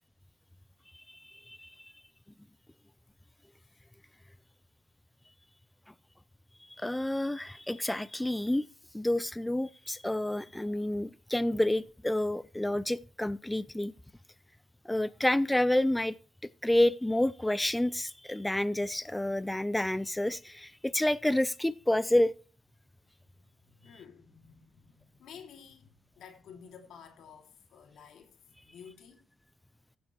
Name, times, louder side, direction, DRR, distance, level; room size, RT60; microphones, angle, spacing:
voice 1, 1.1-1.9 6.8-8.7 8.9-13.9 14.9-16.2 16.6-22.3, left 1 dB, 10° left, 0.4 m, -29 dB
voice 2, 23.2-29.2, left 7 dB, 75° left, 2.6 m, -53 dB
14.5 x 7.0 x 3.2 m
cardioid pair, 90°, 0 cm